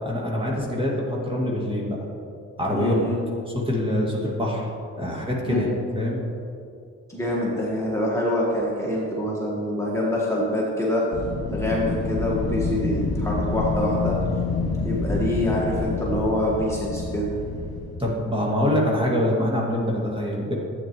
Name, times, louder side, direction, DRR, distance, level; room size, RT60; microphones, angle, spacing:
voice 1, 0.0-2.0 2.6-2.9 3.5-4.7 5.0-5.7 6.0-6.2 18.0-20.5, left 1 dB, 15° right, -2 dB, 2.1 m, -24 dB
voice 2, 2.7-3.3 5.5-5.8 7.1-11.1 11.5-14.2 14.8-17.3, left 1 dB, 10° left, -5 dB, 1.5 m, -25 dB
Wind, 11.1-18.1, left 3 dB, 55° left, 2.0 m, -27 dB
12.0 x 8.6 x 3.1 m, 2.5 s
cardioid pair, 90°, 30 cm